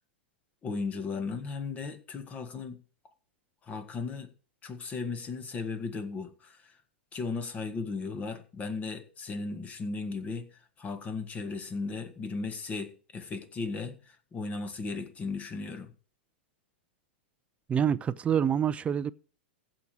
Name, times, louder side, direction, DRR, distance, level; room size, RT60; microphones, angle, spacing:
voice 1, 0.6-2.8 3.6-4.3 4.6-6.8 7.1-10.5 10.8-15.9, left 4 dB, 25° left, 1.8 m, -36 dB
voice 2, 17.7-19.1, right 8 dB, 20° right, 0.6 m, -26 dB
15.0 x 5.1 x 7.5 m
hypercardioid pair, 105°, 6 cm